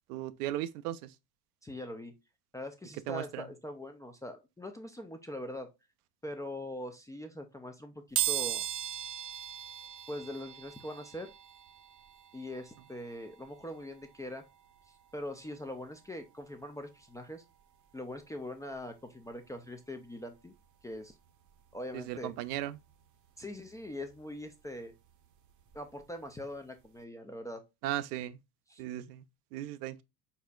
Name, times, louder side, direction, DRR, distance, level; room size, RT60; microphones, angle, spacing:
voice 1, 0.1-1.1 3.1-3.4 21.9-22.8 27.8-28.4 28.8-29.2 29.5-30.0, right 13 dB, 70° right, 0.6 m, -36 dB
voice 2, 1.6-2.1 2.5-5.7 6.2-8.6 10.1-11.3 12.3-14.4 14.9-17.4 17.9-20.5 20.8-21.2 21.7-22.3 23.4-24.9 25.7-27.6 28.7-28.8, left 1 dB, 10° left, 0.4 m, -42 dB
sound 1, 8.2-18.8 19.3-19.4 20.5-20.6 20.9-23.0 23.4-26.0 26.3-26.5 26.8-26.9, right 12 dB, 40° right, 0.8 m, -40 dB
4.2 x 4.2 x 2.3 m
hypercardioid pair, 90°, 48 cm